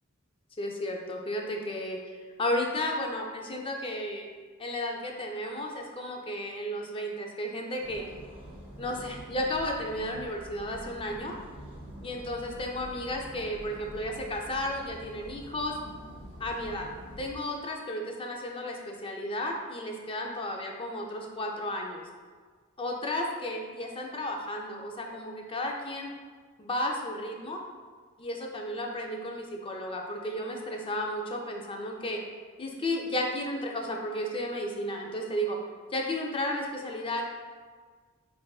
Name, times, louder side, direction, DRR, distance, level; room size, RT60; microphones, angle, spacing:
voice 1, 0.6-4.3 4.6-8.0 8.8-11.3 12.0-15.8 16.4-16.9 17.2-22.1 22.8-26.1 26.6-27.6 28.2-32.2 32.6-35.6 35.9-37.2, left 1 dB, 25° left, 1 dB, 0.4 m, -33 dB
sound 1, 7.8-17.4, equal, 25° right, 1.2 m, -46 dB
7.1 x 2.5 x 2.3 m, 1.5 s
head